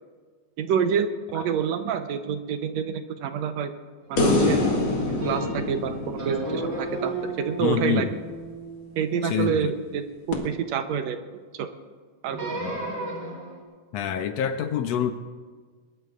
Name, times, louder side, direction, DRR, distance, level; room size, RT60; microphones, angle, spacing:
voice 1, 0.6-3.7 4.1-4.6 5.1-8.1 9.0-11.2 11.5-11.7 12.2-12.5, right 7 dB, 75° right, 8 dB, 1.9 m, -27 dB
sound 1, 4.2-7.5 10.3-10.4, left 2 dB, 45° left, 2.7 m, -25 dB
sound 2, 4.4-5.8 6.2-10.5 12.3-13.6, right 2 dB, 35° right, 4.1 m, -34 dB
voice 2, 7.6-8.1 9.2-9.7 12.6-12.9 13.9-15.1, left 9 dB, 75° left, 8 dB, 1.7 m, -27 dB
21.0 x 21.0 x 2.5 m, 1.5 s
omnidirectional pair, 3.3 m